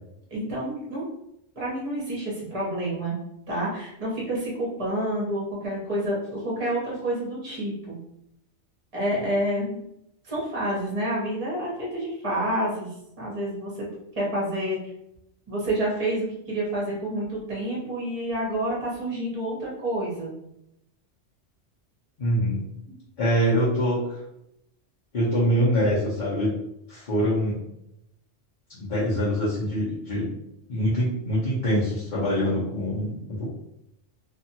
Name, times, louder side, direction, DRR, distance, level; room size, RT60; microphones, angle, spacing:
voice 1, 0.3-1.1 1.6-3.2 3.5-8.0 8.9-9.8 10.2-13.9 14.2-14.8 15.5-20.3, right 1 dB, 30° right, -5 dB, 0.9 m, -28 dB
voice 2, 22.2-22.6 23.2-24.0 25.1-26.5 26.9-27.6 28.7-30.3 30.7-33.5, equal, 45° left, -9 dB, 0.9 m, -24 dB
2.6 x 2.4 x 2.8 m, 0.82 s
omnidirectional pair, 1.2 m